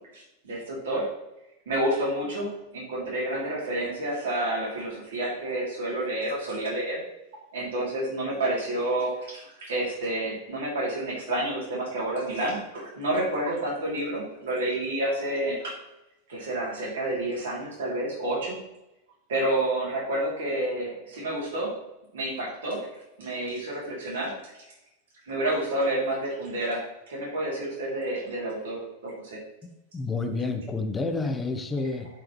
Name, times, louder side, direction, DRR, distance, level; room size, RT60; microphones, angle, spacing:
voice 1, 0.1-1.1 1.7-7.0 7.5-15.7 16.3-18.6 19.3-21.7 22.1-22.9 23.2-24.3 25.2-29.4, right 1 dB, 60° right, -4 dB, 3.0 m, -29 dB
voice 2, 29.9-32.1, left 3 dB, 15° left, 5 dB, 1.0 m, -29 dB
11.0 x 5.0 x 3.1 m, 0.91 s
figure-of-eight pair, 90°, 0 cm